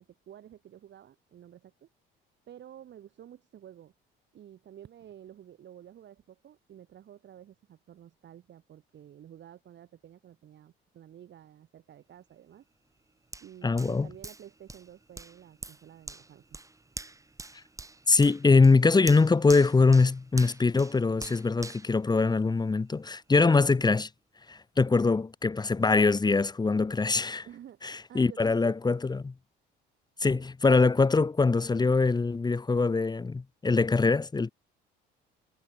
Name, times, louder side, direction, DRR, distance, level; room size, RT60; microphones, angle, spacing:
voice 1, 0.0-1.9 2.5-3.9 4.3-12.7 13.4-16.6 27.5-28.8 30.3-30.4, right 10 dB, 55° right, 5.9 m, -51 dB
Hands, 13.3-22.8 23.3-23.4, right 2 dB, 15° right, 4.3 m, -45 dB
voice 2, 13.6-14.1 18.1-24.1 24.5-27.4 27.8-29.3 30.2-34.5, left 4 dB, 20° left, 1.2 m, -23 dB
supercardioid pair, 85°, 21 cm